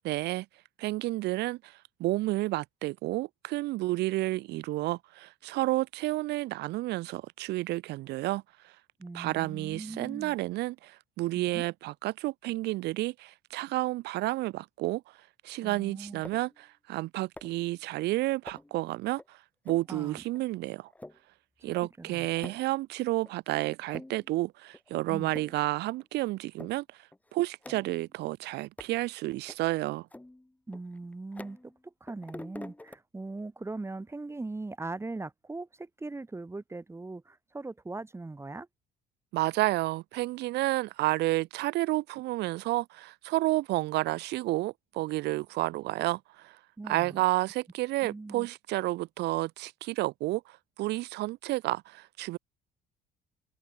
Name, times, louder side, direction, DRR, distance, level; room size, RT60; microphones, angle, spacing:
voice 1, 0.0-0.4 0.8-8.7 9.1-15.0 15.4-19.4 19.6-20.9 21.6-26.8 27.3-30.1 39.3-46.6 46.9-52.4, right 18 dB, 85° right, 3.4 m, -31 dB
voice 2, 9.0-10.4 11.4-11.7 15.6-16.2 19.9-20.2 22.0-22.3 25.1-25.3 30.7-38.7 46.8-47.2 48.0-48.5, right 3 dB, 15° right, 4.1 m, -40 dB
sound 1, 16.2-16.6 17.4-17.7 18.5-18.8 19.2-19.3 19.7-19.9 20.4-20.5 20.8-21.2 21.7-21.8 22.1-22.7 23.3-23.4 23.8-24.3 24.7-24.9 25.2-25.7 26.0-26.1 26.6-26.8 27.1-28.1 28.8-29.0 29.5-29.6 30.1-31.8 32.1-33.0, left 1 dB, 10° left, 5.8 m, -47 dB
cardioid pair, 110°, 17 cm